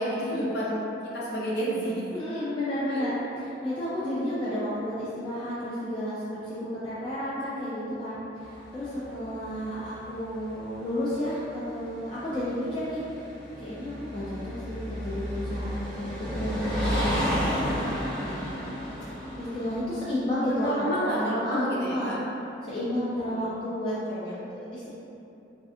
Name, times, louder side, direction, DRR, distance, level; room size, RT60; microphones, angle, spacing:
voice 1, 0.0-2.1 2.9-3.1 20.4-22.2 23.3-23.4 24.1-24.3, right 1 dB, 65° left, -6 dB, 0.6 m, -30 dB
voice 2, 2.1-13.0 13.6-18.4 19.4-22.1 22.6-24.0 24.2-24.9, left 1 dB, 25° left, -11 dB, 0.4 m, -32 dB
sound 1, 8.4-19.8, equal, 10° left, 1.1 m, -32 dB
3.2 x 2.6 x 2.4 m, 2.8 s
head